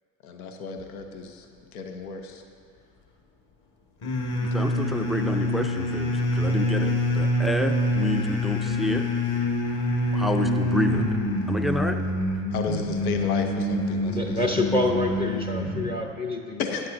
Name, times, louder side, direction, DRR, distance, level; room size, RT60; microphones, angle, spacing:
voice 1, 0.2-1.5 1.7-2.4 12.5-14.4 16.6-16.9, left 5 dB, 80° left, 5 dB, 0.8 m, -33 dB
sound 1, 4.0-15.9, left 1 dB, 45° left, 1.7 m, -26 dB
voice 2, 4.4-9.1 10.1-11.2 11.5-12.0, left 1 dB, ahead, 7 dB, 0.4 m, -29 dB
voice 3, 14.0-16.6, left 2 dB, 20° left, 3 dB, 0.7 m, -27 dB
13.5 x 10.0 x 2.6 m, 2.2 s
hypercardioid pair, 65°, 43 cm